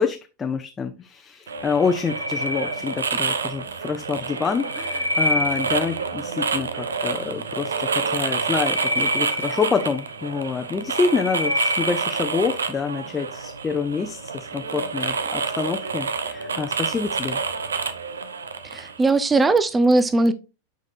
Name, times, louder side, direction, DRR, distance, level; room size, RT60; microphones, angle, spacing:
voice 1, 0.0-17.4, left 5 dB, 15° left, 0.8 m, -27 dB
sound 1, 1.5-19.0, right 5 dB, 70° right, 0.8 m, -28 dB
sound 2, 1.7-3.4 4.3-6.2 8.2-10.3 10.7-12.3, left 1 dB, 85° left, 1.3 m, -28 dB
voice 2, 18.7-20.3, right 2 dB, 15° right, 0.7 m, -19 dB
9.8 x 5.2 x 2.6 m
figure-of-eight pair, 90°, 0 cm